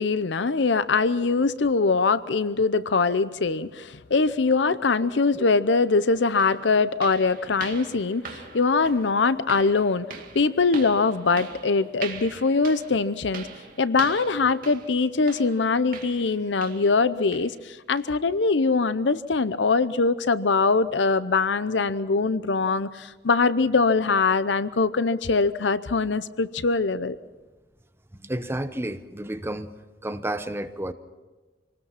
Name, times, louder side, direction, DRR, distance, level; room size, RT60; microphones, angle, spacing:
voice 1, 0.0-13.5 13.8-27.2, left 4 dB, 80° left, 15 dB, 0.7 m, -23 dB
sound 1, 5.8-5.9 6.4-17.0 17.3-17.6 18.0-18.2 18.6-18.7 19.3-19.4, right 5 dB, 50° right, 2.3 m, -42 dB
voice 2, 28.2-29.7 30.0-30.9, right 1 dB, 15° right, 10 dB, 0.9 m, -31 dB
26.0 x 19.5 x 5.8 m, 1.2 s
head